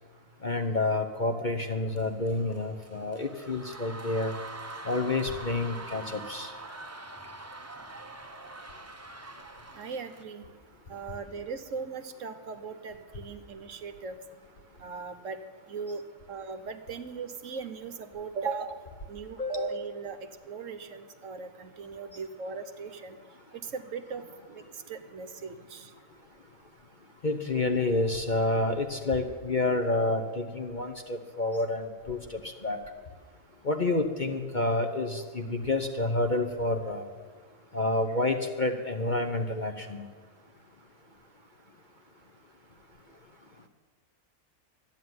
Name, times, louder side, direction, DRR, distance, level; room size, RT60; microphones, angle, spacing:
voice 1, 0.4-4.3 4.8-6.5 19.4-19.7 27.2-32.8 33.6-37.0 37.7-40.0, left 2 dB, 40° left, 6 dB, 0.9 m, -29 dB
sound 1, 1.9-10.2, right 2 dB, 15° right, 0.5 m, -44 dB
voice 2, 9.7-10.4 10.9-14.2 14.8-15.4 15.7-16.0 16.3-18.8 19.1-20.2 20.5-23.1 23.7-24.2 24.9-25.8, right 5 dB, 60° right, 10 dB, 1.2 m, -38 dB
13.0 x 9.7 x 9.4 m, 1.5 s
omnidirectional pair, 1.6 m